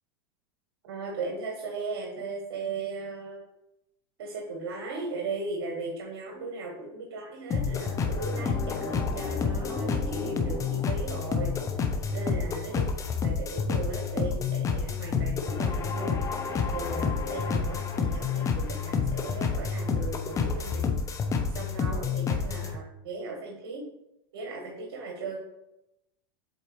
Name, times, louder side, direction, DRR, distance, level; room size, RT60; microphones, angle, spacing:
voice 1, 0.8-3.5 4.2-11.5 12.1-12.9 13.2-20.9 21.5-23.8 24.3-25.4, right 3 dB, 80° right, 0 dB, 1.5 m, -37 dB
sound 1, 7.5-22.7, left 5 dB, 25° left, 0.8 m, -29 dB
7.8 x 4.2 x 3.2 m, 0.86 s
supercardioid pair, 130°, 14 cm